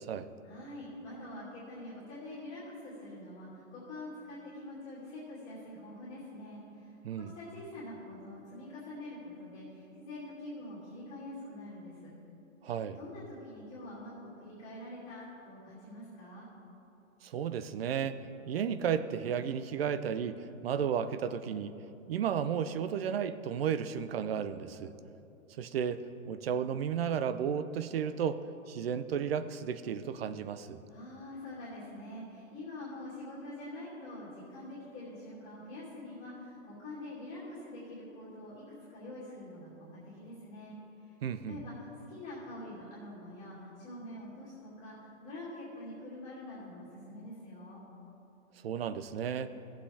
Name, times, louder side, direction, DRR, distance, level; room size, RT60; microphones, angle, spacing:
voice 1, 0.4-12.1 12.9-16.5 30.9-40.8 41.5-41.7 42.1-47.8, left 1 dB, 20° left, -11 dB, 2.4 m, -45 dB
voice 2, 7.0-7.3 12.6-13.0 17.2-21.7 22.1-24.9 25.6-28.4 28.7-30.8 41.2-41.6 48.6-49.5, right 8 dB, 50° right, 12 dB, 0.5 m, -33 dB
18.0 x 7.7 x 3.4 m, 2.8 s
hypercardioid pair, 170°, 40 cm